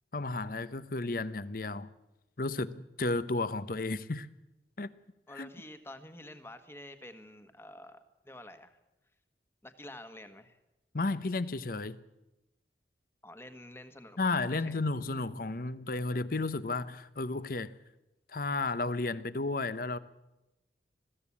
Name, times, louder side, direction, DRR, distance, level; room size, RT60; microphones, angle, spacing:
voice 1, 0.1-1.9 2.4-4.3 4.8-4.9 5.3-5.5 10.9-12.0 14.2-17.7 18.3-20.0, left 3 dB, 55° left, 0.8 m, -33 dB
voice 2, 5.3-8.8 9.6-10.6 13.2-14.2 14.5-14.8, left 1 dB, 15° left, 1.3 m, -49 dB
21.0 x 15.5 x 8.5 m
head